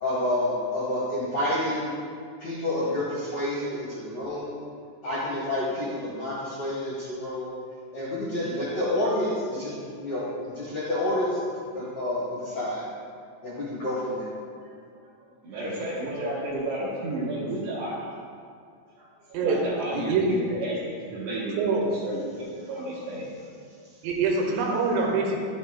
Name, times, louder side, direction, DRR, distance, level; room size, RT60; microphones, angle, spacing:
voice 1, 0.0-1.9 2.4-4.6 5.0-7.5 7.9-11.4 11.7-12.8 13.4-14.2, left 1 dB, 75° left, -8 dB, 1.5 m, -29 dB
voice 2, 15.4-18.1 19.0-23.3, right 1 dB, 65° right, -8 dB, 2.9 m, -32 dB
voice 3, 19.9-20.3 21.6-21.9 24.0-25.4, right 4 dB, 85° right, 0 dB, 3.6 m, -24 dB
11.5 x 8.5 x 2.3 m, 2.2 s
omnidirectional pair, 5.9 m